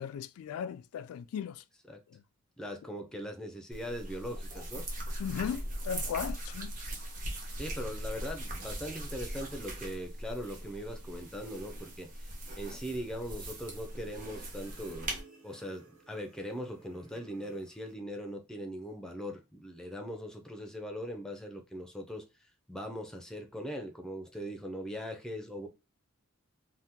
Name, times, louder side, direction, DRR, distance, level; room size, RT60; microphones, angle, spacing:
voice 1, 0.0-1.6 2.1-2.2 5.2-6.8, left 8 dB, 85° left, 0.3 m, -37 dB
voice 2, 2.6-4.9 7.6-12.1 12.6-15.2 15.4-22.2 22.7-25.7, equal, 5° left, 0.5 m, -40 dB
sound 1, 3.7-15.2, right 1 dB, 40° right, 0.9 m, -40 dB
sound 2, 13.6-18.0, right 2 dB, 85° right, 1.6 m, -59 dB
2.8 x 2.2 x 3.5 m
head